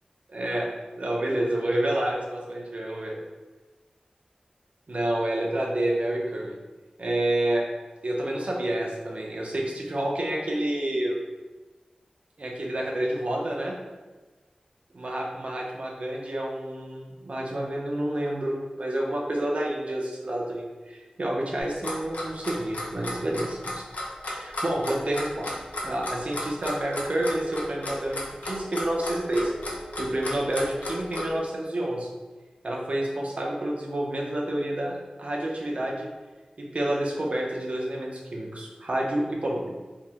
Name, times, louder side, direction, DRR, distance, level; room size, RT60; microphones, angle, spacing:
voice 1, 0.3-0.7 1.0-3.2 4.9-6.6 7.0-7.6 8.0-11.2 12.4-13.8 14.9-23.9 24.2-25.5 25.8-29.5 30.0-32.1 32.6-36.1 36.6-39.8, right 1 dB, 60° right, -1 dB, 0.6 m, -29 dB
Clock, 21.6-31.3, left 1 dB, 85° left, 0.6 m, -33 dB
3.6 x 2.1 x 3.0 m, 1.2 s
wide cardioid pair, 60°, 3 cm